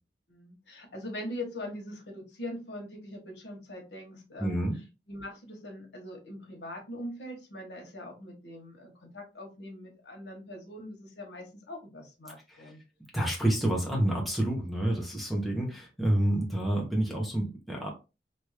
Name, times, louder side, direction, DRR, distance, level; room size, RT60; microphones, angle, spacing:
voice 1, 0.3-4.6 5.1-12.8 15.5-15.7, left 1 dB, 85° left, 1 dB, 1.2 m, -42 dB
voice 2, 4.4-4.8 12.5-12.7 13.1-17.9, right 1 dB, ahead, -3 dB, 0.9 m, -28 dB
2.9 x 2.6 x 3.3 m, 0.29 s
head